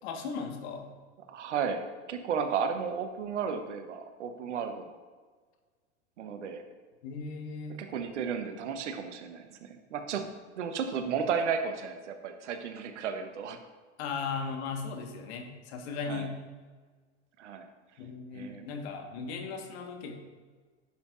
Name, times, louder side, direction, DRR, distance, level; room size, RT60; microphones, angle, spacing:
voice 1, 0.0-0.9 7.0-7.8 14.0-16.3 18.0-20.1, left 5 dB, 65° left, 4 dB, 1.5 m, -37 dB
voice 2, 1.3-1.8 2.1-4.9 6.2-6.6 7.8-10.3 10.6-13.6 16.1-16.3 17.4-17.7 18.3-18.7, right 6 dB, 80° right, 7 dB, 1.0 m, -33 dB
10.5 x 7.3 x 2.5 m, 1.4 s
hypercardioid pair, 95°, 35 cm